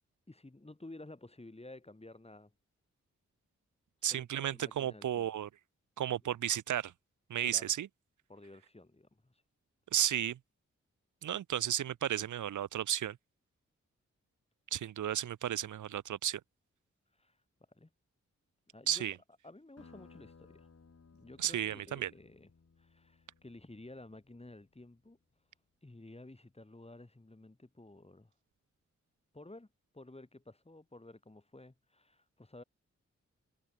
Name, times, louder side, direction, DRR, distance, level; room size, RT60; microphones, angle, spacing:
voice 1, 0.3-2.5 4.1-5.3 7.5-7.7 8.3-9.4 17.2-17.4 17.7-17.9 18.7-19.1 19.4-20.7 21.1-22.5 22.8-25.2 25.8-28.3 29.3-29.7 29.9-32.6, left 2 dB, 20° left, 3.1 m, -53 dB
voice 2, 4.0-5.5 6.0-6.9 7.3-7.9 9.9-10.4 11.2-13.2 14.7-16.4 18.9-19.2 21.4-22.1, right 10 dB, 85° right, 0.8 m, -33 dB
sound 1, 19.8-24.9, left 5 dB, 55° left, 5.6 m, -61 dB
cardioid pair, 45°, 29 cm